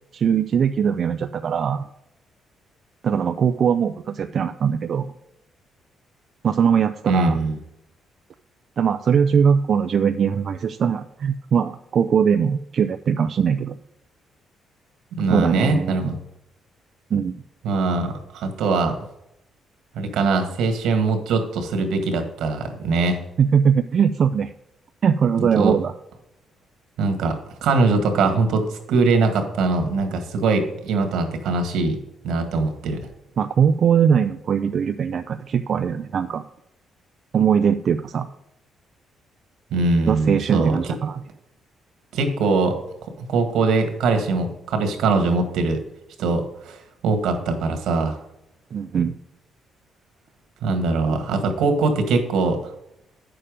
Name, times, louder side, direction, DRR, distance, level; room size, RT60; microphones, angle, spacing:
voice 1, 0.1-1.9 3.0-5.1 6.4-7.4 8.8-13.8 15.3-16.1 17.1-17.4 23.4-24.5 25.0-25.9 33.4-36.4 37.3-38.3 40.1-41.2 48.7-49.1, right 7 dB, 55° right, 7 dB, 0.5 m, -21 dB
voice 2, 7.1-7.6 15.1-16.2 17.6-18.9 19.9-23.2 25.4-25.7 27.0-27.4 27.6-32.0 32.2-33.1 39.7-40.8 42.1-42.8 43.0-45.8 46.2-48.2 50.6-52.7, right 3 dB, 80° right, 6 dB, 1.8 m, -22 dB
8.8 x 6.8 x 5.1 m, 0.82 s
cardioid pair, 90°, 0 cm